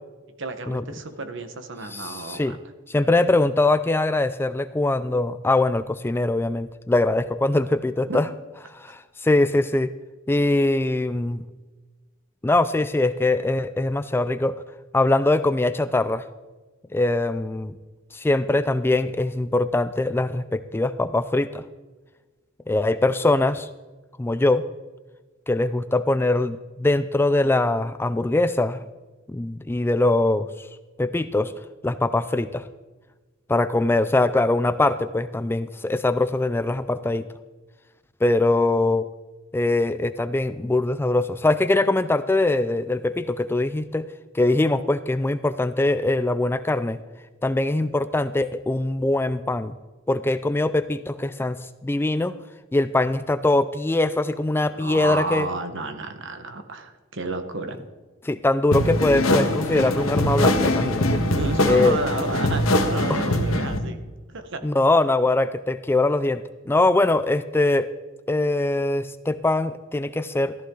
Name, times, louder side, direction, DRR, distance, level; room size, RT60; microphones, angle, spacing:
voice 1, 0.4-2.6 8.1-8.2 54.6-57.8 61.3-64.0 64.3-64.6, right 3 dB, 65° right, 8 dB, 1.3 m, -32 dB
voice 2, 1.9-2.6 2.9-8.3 8.7-9.9 10.3-11.4 12.4-14.5 14.9-16.3 16.9-17.7 18.1-21.6 22.7-23.7 24.2-24.6 25.5-28.8 29.3-30.7 31.0-31.5 31.8-32.6 33.5-37.3 38.2-39.1 39.5-44.1 44.3-47.0 47.4-49.7 50.1-52.3 52.7-55.5 58.2-61.2 61.6-62.0 63.1-63.2 64.6-67.9 68.3-70.6, left 2 dB, 10° left, 13 dB, 0.3 m, -22 dB
sound 1, 58.7-63.8, left 1 dB, 85° left, 1.5 m, -22 dB
14.0 x 14.0 x 3.9 m, 1.2 s
head